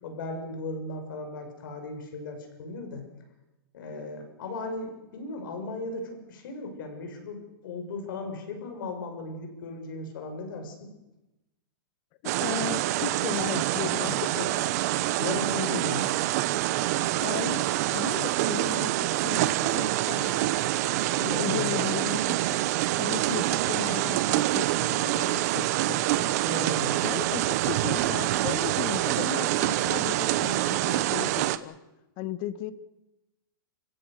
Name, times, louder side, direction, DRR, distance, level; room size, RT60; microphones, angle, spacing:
voice 1, 0.0-3.0 3.7-10.9 14.0-14.5 14.8-16.2 21.5-21.9 26.4-27.0, left 3 dB, 60° left, 5 dB, 6.7 m, -36 dB
sound 1, 12.3-31.6, right 15 dB, 45° right, 1.1 m, -26 dB
voice 2, 12.4-14.2 17.2-18.9 19.2-20.5 21.2-22.6 23.0-26.3 27.0-31.7 32.2-32.7, left 12 dB, 35° left, 14 dB, 1.4 m, -36 dB
30.0 x 17.0 x 6.7 m, 0.98 s
hypercardioid pair, 155°, 12 cm